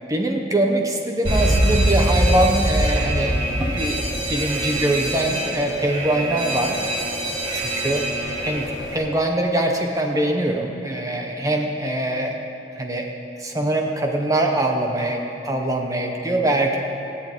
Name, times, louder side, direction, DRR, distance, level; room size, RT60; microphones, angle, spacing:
voice 1, 0.1-4.0 4.3-6.8 7.5-8.0 8.4-12.4 12.8-13.1 13.4-16.8, right 1 dB, 15° right, 2 dB, 0.9 m, -23 dB
Alarm, 1.2-8.9, right 1 dB, 35° right, 3.1 m, -23 dB
17.5 x 8.4 x 8.5 m, 2.9 s
head